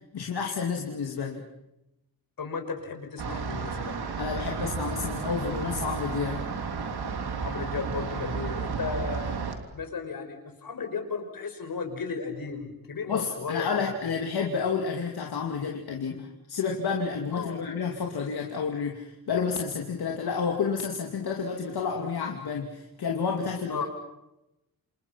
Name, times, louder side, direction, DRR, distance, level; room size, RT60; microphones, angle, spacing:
voice 1, 0.1-1.4 4.2-6.4 13.1-23.8, left 5 dB, 80° left, 1 dB, 2.8 m, -30 dB
voice 2, 2.4-4.0 7.4-9.5 9.7-14.1 17.3-17.6 23.7-23.9, left 5 dB, 65° left, 5 dB, 5.8 m, -35 dB
sound 1, 3.2-9.6, right 5 dB, 80° right, 3.3 m, -32 dB
28.5 x 28.0 x 5.9 m, 0.90 s
wide cardioid pair, 165°, 38 cm